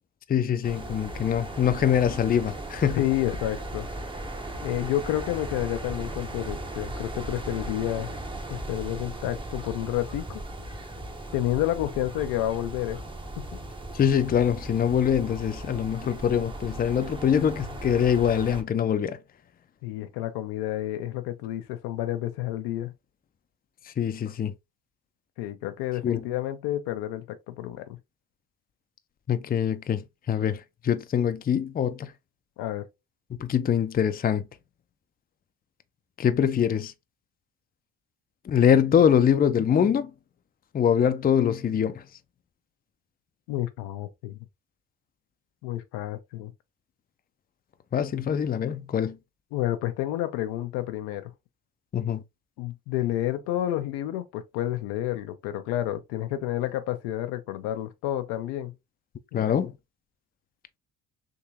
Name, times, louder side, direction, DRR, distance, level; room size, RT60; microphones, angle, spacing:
voice 1, 0.3-3.0 13.9-19.2 24.0-24.5 26.0-26.2 29.3-32.1 33.4-34.4 36.2-36.9 38.5-40.1 40.7-42.0 47.9-49.2 51.9-52.2 59.3-59.7, left 8 dB, 25° left, 0.5 m, -24 dB
sound 1, 0.6-18.6, right 1 dB, 15° right, 0.7 m, -37 dB
voice 2, 2.9-3.9 4.6-8.1 8.5-10.4 11.3-13.0 13.4-13.5 19.8-22.9 25.4-28.0 32.6-32.9 43.5-44.4 45.6-46.5 49.5-51.3 52.6-58.7 59.3-59.7, left 13 dB, 85° left, 0.7 m, -30 dB
3.6 x 3.0 x 2.7 m
supercardioid pair, 75°, 38 cm